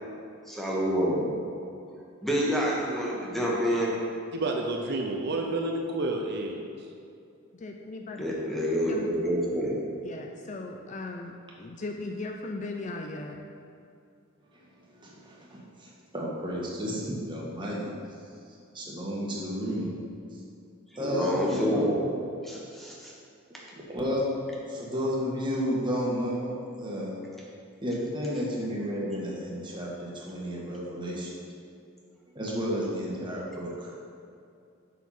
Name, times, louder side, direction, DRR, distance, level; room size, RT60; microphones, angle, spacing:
voice 1, 0.5-1.3 2.2-3.9 8.2-9.8 21.0-22.1 22.4-23.1, equal, ahead, -5 dB, 1.3 m, -28 dB
voice 2, 4.3-6.6, right 2 dB, 50° right, 2 dB, 0.7 m, -30 dB
voice 3, 7.6-8.3 8.9-9.1 10.0-11.3 11.6-13.4, left 2 dB, 35° left, 3 dB, 0.5 m, -37 dB
voice 4, 14.5-17.9 18.7-19.9 21.0-21.8 23.9-24.2 24.7-27.2 27.8-31.3 32.3-33.9, equal, 20° right, -4 dB, 1.5 m, -32 dB
7.4 x 5.8 x 5.7 m, 2.5 s
head